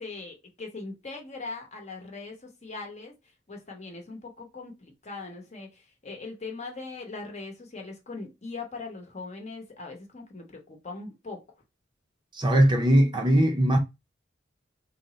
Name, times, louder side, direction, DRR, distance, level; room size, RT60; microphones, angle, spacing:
voice 1, 0.0-3.1 3.5-11.4, left 3 dB, 35° left, 0.9 m, -40 dB
voice 2, 12.3-13.8, right 1 dB, 25° right, 0.6 m, -20 dB
3.3 x 2.1 x 3.9 m
head